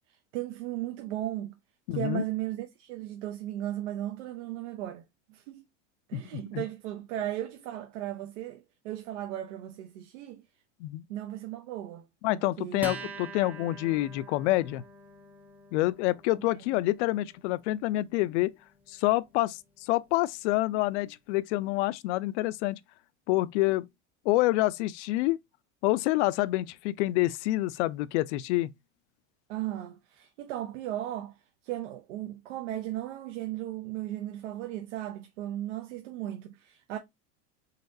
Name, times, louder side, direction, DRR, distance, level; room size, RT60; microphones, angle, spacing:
voice 1, 0.1-1.6 1.9-5.6 6.1-10.4 11.1-12.1 12.3-12.9 16.3-16.4 29.5-31.4 31.6-37.0, right 13 dB, 85° right, 0.8 m, -36 dB
voice 2, 1.9-2.2 6.1-6.2 6.5-6.6 10.8-11.0 12.2-14.8 15.7-18.5 18.9-22.8 23.3-23.9 24.2-25.4 25.8-28.7, left 17 dB, 70° left, 0.5 m, -27 dB
Acoustic guitar, 12.8-19.7, right 3 dB, 5° right, 0.7 m, -46 dB
4.1 x 3.8 x 2.6 m
supercardioid pair, 140°, 36 cm